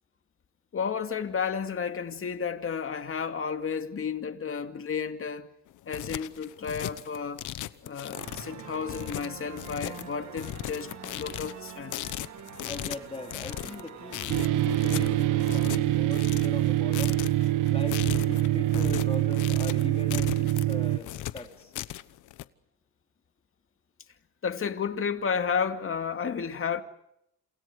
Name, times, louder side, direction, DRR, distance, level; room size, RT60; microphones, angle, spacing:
voice 1, 0.7-5.5 5.9-7.4 7.8-12.0 24.4-26.8, left 6 dB, 45° left, 2.4 m, -32 dB
sound 1, 5.7-22.4, left 14 dB, 80° left, 1.1 m, -38 dB
sound 2, 8.1-15.7, right 9 dB, 65° right, 2.0 m, -45 dB
voice 2, 12.6-17.2 17.7-21.7, left 2 dB, 20° left, 3.2 m, -40 dB
sound 3, 14.3-21.0, right 15 dB, 85° right, 1.3 m, -25 dB
29.5 x 28.5 x 5.1 m
cardioid pair, 90°, 30 cm